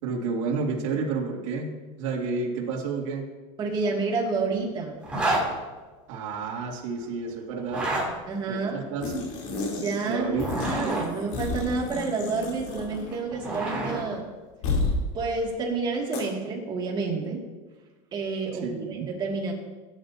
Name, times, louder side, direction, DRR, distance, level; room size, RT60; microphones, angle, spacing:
voice 1, 0.0-3.2 6.1-7.9 8.5-9.3 10.1-10.6 18.6-19.1, right 4 dB, 75° right, -2 dB, 2.6 m, -30 dB
voice 2, 3.6-4.9 8.3-8.9 9.8-14.3 15.1-17.4 18.1-19.5, right 4 dB, 25° right, -1 dB, 2.4 m, -29 dB
Zipper (clothing), 5.0-5.4 7.6-8.1 10.2-11.1 12.9-14.0, right 2 dB, 5° right, 3.3 m, -28 dB
sound 1, 9.0-10.1 10.4-13.2 13.4-13.6 14.6-15.0 16.1-16.2, left 3 dB, 70° left, 3.5 m, -31 dB
18.5 x 10.5 x 2.8 m, 1.3 s
supercardioid pair, 160°, 17 cm